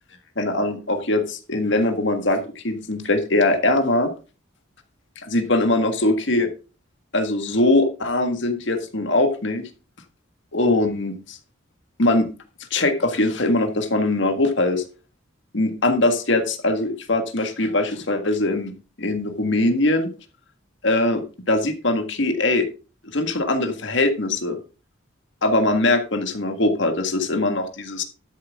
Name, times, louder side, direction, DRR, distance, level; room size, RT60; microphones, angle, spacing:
voice 1, 0.4-4.1 5.2-6.5 7.1-9.6 10.5-11.4 12.0-12.3 12.7-14.8 15.5-18.7 19.0-20.1 20.8-21.2 21.5-22.7 23.1-24.6 25.4-28.0, left 2 dB, 60° left, 6 dB, 1.7 m, -21 dB
12.5 x 7.3 x 3.6 m, 0.33 s
head